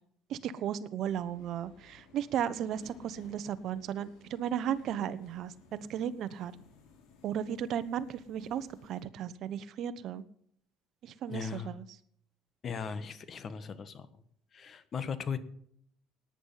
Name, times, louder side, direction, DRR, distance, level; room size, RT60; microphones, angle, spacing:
voice 1, 0.3-6.5 7.2-10.2 11.0-11.8, right 9 dB, 60° right, 15 dB, 1.0 m, -35 dB
Subway metro underground, 1.1-9.0, left 4 dB, 80° left, 5.6 m, -58 dB
voice 2, 11.3-11.7 12.6-14.1 14.5-15.4, left 6 dB, 40° left, 13 dB, 1.5 m, -38 dB
17.5 x 9.9 x 5.7 m, 0.67 s
cardioid pair, 115°, 0 cm